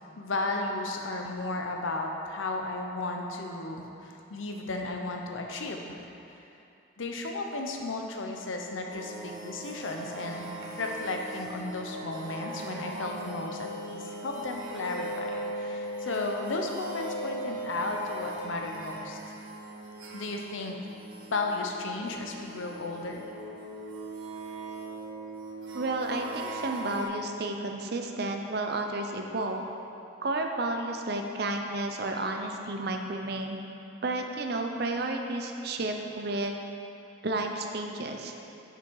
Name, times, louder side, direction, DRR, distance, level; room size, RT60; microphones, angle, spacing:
voice 1, 0.2-6.0 7.0-10.5 10.8-19.2 20.1-20.8 21.3-23.2, left 2 dB, 75° left, 2 dB, 0.8 m, -34 dB
sound 1, 8.9-27.0, right 1 dB, 85° right, 1.1 m, -39 dB
voice 2, 25.7-29.8 30.2-33.6 34.0-36.5 37.2-38.3, right 2 dB, 50° right, 3 dB, 0.6 m, -32 dB
6.8 x 6.3 x 4.6 m, 2.8 s
head